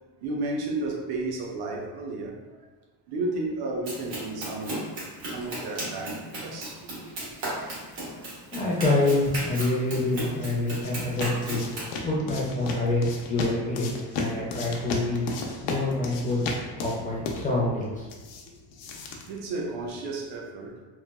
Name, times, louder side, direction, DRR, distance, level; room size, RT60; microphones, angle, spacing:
voice 1, 0.2-2.4 3.1-7.3 8.2-8.3 18.8-20.8, right 2 dB, 60° right, 0 dB, 0.6 m, -33 dB
Run, 3.9-12.0, right 1 dB, 80° right, 1.3 m, -36 dB
voice 2, 8.1-11.7 12.0-15.3 15.6-16.5 16.7-18.1, left 2 dB, 20° left, -5 dB, 0.4 m, -27 dB
sound 1, 10.1-20.1, left 3 dB, 90° left, 0.6 m, -35 dB
3.2 x 2.2 x 2.2 m, 1.3 s
cardioid pair, 155°, 43 cm